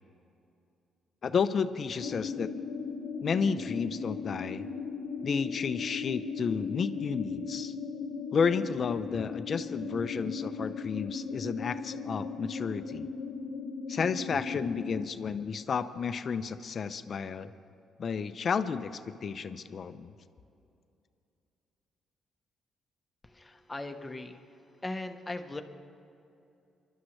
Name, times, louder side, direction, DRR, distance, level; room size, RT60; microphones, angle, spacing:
voice 1, 1.2-2.5 3.2-4.7 5.2-7.7 8.3-13.1 13.9-17.5 18.0-20.1, left 6 dB, 50° left, 11 dB, 0.6 m, -31 dB
sound 1, 2.0-15.1, left 5 dB, 85° left, 0.9 m, -37 dB
voice 2, 23.2-25.6, left 2 dB, 15° left, 6 dB, 1.0 m, -39 dB
25.0 x 12.0 x 3.2 m, 2.6 s
cardioid pair, 90°, 0 cm